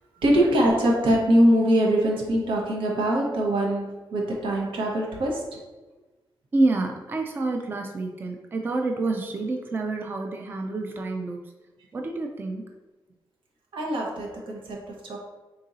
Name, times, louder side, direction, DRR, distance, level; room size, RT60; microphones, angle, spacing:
voice 1, 0.2-5.5 13.7-15.2, right 1 dB, 85° right, -1 dB, 1.0 m, -23 dB
voice 2, 6.5-11.5 11.9-12.7, right 2 dB, 25° right, 3 dB, 0.3 m, -28 dB
3.7 x 2.6 x 4.0 m, 1.2 s
wide cardioid pair, 150°, 9 cm